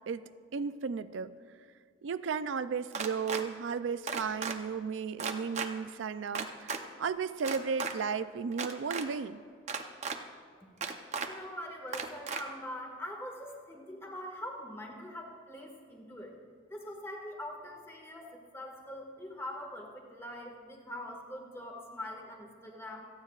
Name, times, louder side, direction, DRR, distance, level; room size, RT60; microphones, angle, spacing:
voice 1, 0.1-1.3 2.0-9.4, right 6 dB, 90° right, 13 dB, 0.4 m, -34 dB
sound 1, 2.9-3.4 4.1-4.6 5.2-5.7 6.3-6.8 7.4-7.9 8.5-9.0 9.7-10.2 10.8-11.3 11.9-12.4, right 5 dB, 35° right, 0.7 m, -35 dB
voice 2, 11.3-16.3 16.7-18.3 18.5-23.1, left 1 dB, 15° left, 1 dB, 1.7 m, -43 dB
27.5 x 9.4 x 2.4 m, 2.1 s
head